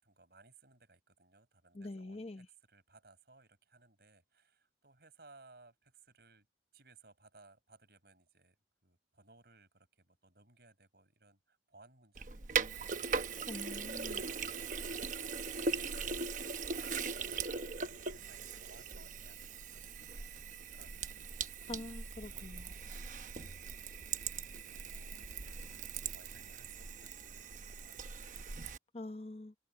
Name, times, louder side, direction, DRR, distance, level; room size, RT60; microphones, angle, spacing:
voice 1, 0.0-6.5 6.7-8.6 8.8-16.2 16.6-21.6 22.3-23.9 24.2-28.0, right 3 dB, 60° right, 6.3 m, -63 dB
voice 2, 1.7-2.5 13.5-14.2 21.7-22.7 28.9-29.5, left 2 dB, 35° left, 0.9 m, -45 dB
Sink (filling or washing), 12.2-28.8, right 5 dB, 45° right, 1.1 m, -40 dB
head